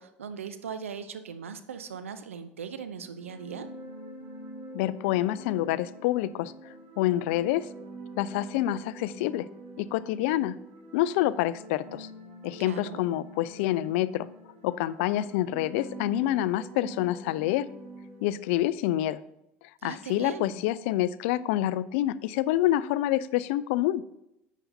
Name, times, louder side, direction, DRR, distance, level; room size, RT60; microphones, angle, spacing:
voice 1, 0.0-3.7 12.6-13.0 19.8-20.6, right 6 dB, 85° right, 10 dB, 0.6 m, -39 dB
sound 1, 3.0-18.7, right 1 dB, 65° right, 3.4 m, -45 dB
voice 2, 4.7-7.7 8.2-9.5 9.8-10.5 10.9-12.1 12.4-14.3 14.6-17.7 18.2-19.2 19.8-24.0, left 14 dB, 70° left, 17 dB, 0.4 m, -27 dB
11.0 x 8.2 x 2.7 m, 0.86 s
hypercardioid pair, 65°, 7 cm